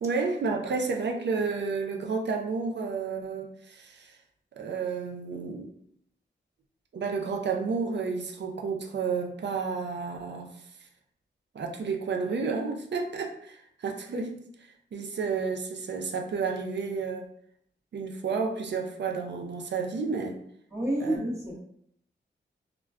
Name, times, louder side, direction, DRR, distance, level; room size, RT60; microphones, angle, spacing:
voice 1, 0.0-4.2 4.6-5.7 6.9-10.5 11.5-17.3 17.9-20.4 21.0-21.2, right 5 dB, 65° right, 2 dB, 0.4 m, -31 dB
voice 2, 20.7-21.6, right 1 dB, 15° right, -4 dB, 0.9 m, -29 dB
2.2 x 2.1 x 3.4 m, 0.69 s
cardioid pair, 70°, 20 cm